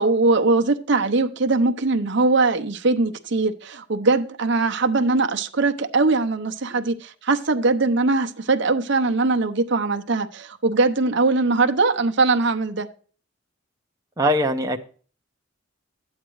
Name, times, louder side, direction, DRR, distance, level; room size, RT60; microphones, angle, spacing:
voice 1, 0.0-12.9, right 3 dB, 60° right, 0.8 m, -21 dB
voice 2, 14.2-14.8, equal, 15° right, 0.7 m, -21 dB
12.0 x 8.9 x 3.1 m
head